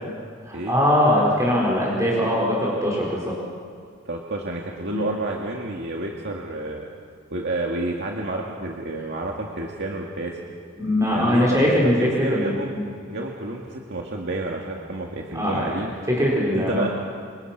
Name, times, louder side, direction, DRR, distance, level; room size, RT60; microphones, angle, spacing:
voice 1, 0.4-3.3 4.9-5.0 10.8-12.9 15.3-15.8 16.1-16.9, left 1 dB, 15° right, -4 dB, 4.7 m, -21 dB
voice 2, 4.1-6.9 7.3-10.4 11.1-12.7 13.1-15.9 16.5-16.9, right 2 dB, 60° right, -1 dB, 2.2 m, -30 dB
28.0 x 27.0 x 6.0 m, 2.2 s
head